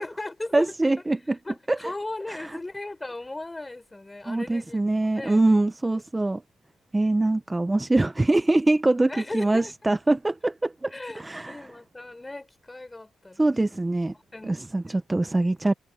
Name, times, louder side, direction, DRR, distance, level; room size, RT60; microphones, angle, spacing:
voice 1, 0.0-0.7 1.4-4.8 5.1-5.4 9.1-9.7 10.9-13.9 14.3-15.0, left 2 dB, 15° left, 5.9 m, -37 dB
voice 2, 0.5-1.4 1.7-1.9 2.3-2.6 4.3-6.4 6.9-11.6 13.4-14.1 14.4-15.7, right 2 dB, 15° right, 0.6 m, -24 dB
cardioid pair, 90°, 0 cm